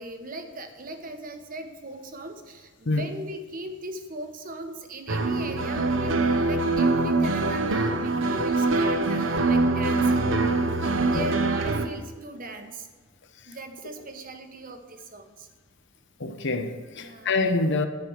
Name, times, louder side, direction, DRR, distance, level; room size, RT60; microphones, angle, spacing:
voice 1, 0.0-10.3 10.7-12.9 13.5-15.5 16.9-17.4, right 2 dB, 45° right, 1.0 m, -39 dB
sound 1, 5.1-11.9, right 3 dB, 65° right, 0.8 m, -24 dB
voice 2, 16.2-17.9, left 3 dB, 60° left, 0.9 m, -26 dB
10.5 x 5.1 x 7.9 m
head